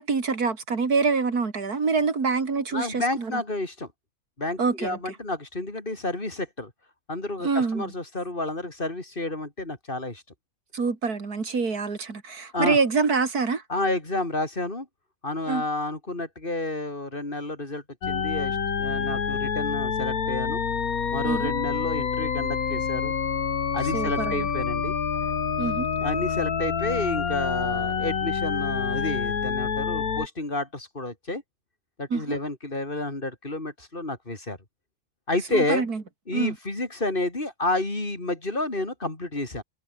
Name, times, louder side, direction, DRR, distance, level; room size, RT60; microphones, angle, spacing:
voice 1, 0.0-3.4 4.6-5.0 7.4-7.9 10.7-13.6 15.5-15.6 21.2-21.5 23.9-24.4 25.6-25.9 32.1-32.4 35.5-36.0 36.3-36.5, right 4 dB, 85° right, 3.3 m, -26 dB
voice 2, 2.7-3.9 4.4-6.7 7.1-10.2 12.5-12.8 13.7-14.9 15.2-20.6 21.1-23.1 23.7-25.0 26.0-31.4 32.0-34.6 35.3-35.8 36.3-39.6, left 2 dB, 35° left, 4.1 m, -30 dB
sound 1, 18.0-30.3, left 6 dB, 70° left, 2.2 m, -27 dB
omnidirectional pair, 1.6 m